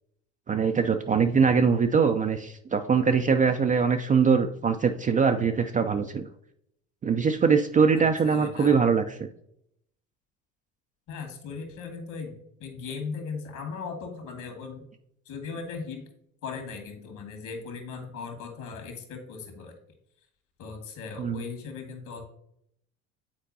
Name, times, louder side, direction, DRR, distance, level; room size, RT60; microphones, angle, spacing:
voice 1, 0.5-6.3 7.0-9.0 21.2-21.4, right 5 dB, 20° right, 6 dB, 0.4 m, -22 dB
voice 2, 7.9-8.8 11.1-14.9 15.3-16.1 16.4-19.7 20.6-22.3, left 5 dB, 55° left, 4 dB, 1.9 m, -38 dB
8.7 x 4.5 x 2.7 m, 0.73 s
hypercardioid pair, 65°, 37 cm